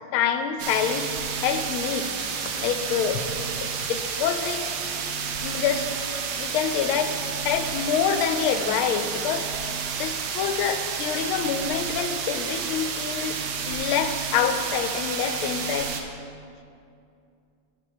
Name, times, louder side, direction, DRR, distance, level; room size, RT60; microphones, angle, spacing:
voice 1, 0.1-1.1 1.4-2.1 2.6-3.2 3.6-4.7 5.4-5.9 6.3-9.5 10.0-13.4 13.7-16.0, left 8 dB, 85° left, 8 dB, 1.5 m, -26 dB
sound 1, 0.6-16.0, right 6 dB, 70° right, 1.1 m, -30 dB
10.5 x 5.2 x 5.0 m, 2.5 s
omnidirectional pair, 2.3 m